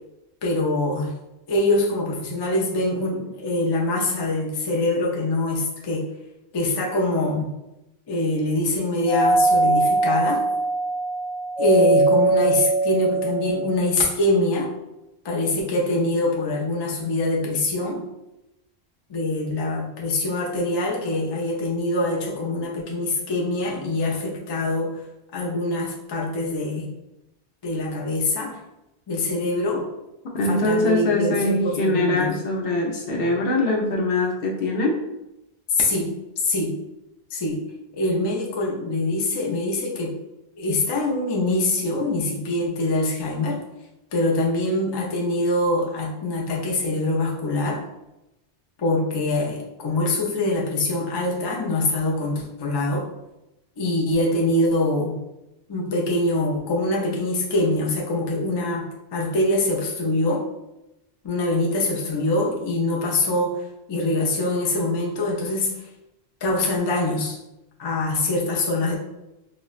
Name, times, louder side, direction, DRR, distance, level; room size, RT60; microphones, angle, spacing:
voice 1, 0.4-1.1 1.5-6.0 6.5-7.5 8.1-10.4 11.6-14.7 15.2-18.0 19.1-24.9 25.3-26.9 27.6-28.6 29.1-29.8 30.4-32.3 35.7-36.1 36.4-36.7 37.3-37.6 37.9-40.1 40.6-43.6 44.1-47.8 48.8-53.1 53.8-55.2 55.7-58.8 59.1-60.4 61.2-63.6 63.9-65.9 66.4-67.4 67.8-69.0, left 2 dB, 40° left, -2 dB, 0.3 m, -24 dB
Doorbell, 9.1-13.9, right 2 dB, 35° right, 0.7 m, -21 dB
voice 2, 30.3-34.9, left 2 dB, 65° left, -1 dB, 0.8 m, -23 dB
4.0 x 2.0 x 2.3 m, 0.92 s
omnidirectional pair, 1.1 m